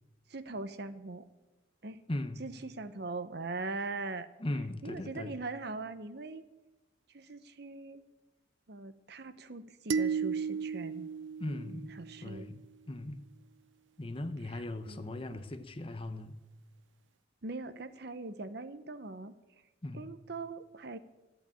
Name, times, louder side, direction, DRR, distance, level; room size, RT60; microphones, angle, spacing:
voice 1, 0.3-1.2 1.8-2.0 2.4-4.3 4.8-6.5 7.1-8.0 8.7-11.1 11.9-12.5 14.4-15.4 17.4-19.4 19.9-21.0, right 3 dB, 60° right, 0.9 m, -41 dB
voice 2, 2.1-2.4 4.4-5.4 11.4-11.9 12.2-12.6 12.9-13.2 14.0-16.4 19.8-20.1, left 1 dB, 30° left, 0.8 m, -38 dB
sound 1, 9.9-12.3, right 6 dB, 75° right, 0.4 m, -34 dB
13.5 x 8.7 x 8.7 m
head